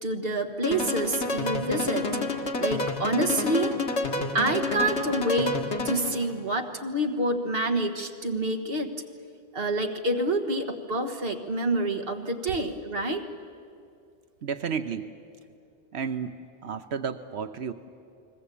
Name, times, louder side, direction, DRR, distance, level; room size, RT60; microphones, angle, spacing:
voice 1, 0.0-2.1 2.6-3.7 4.3-5.6 5.8-8.9 9.5-13.2, right 1 dB, 60° right, 4 dB, 1.7 m, -27 dB
sound 1, 0.6-6.3, left 3 dB, 85° left, 2.0 m, -29 dB
voice 2, 14.4-15.1 15.9-17.7, right 6 dB, 75° right, 10 dB, 1.1 m, -32 dB
29.5 x 21.0 x 8.5 m, 2.4 s
omnidirectional pair, 1.1 m